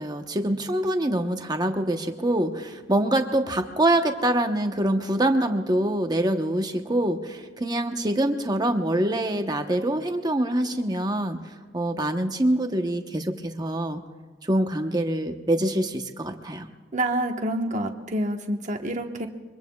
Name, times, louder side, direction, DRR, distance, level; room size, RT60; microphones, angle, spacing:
voice 1, 0.0-11.4 11.7-14.0 14.4-16.7, right 1 dB, 20° right, 5 dB, 1.0 m, -25 dB
voice 2, 16.9-19.3, right 1 dB, 40° right, 3 dB, 1.2 m, -27 dB
25.5 x 23.5 x 2.3 m, 1.4 s
head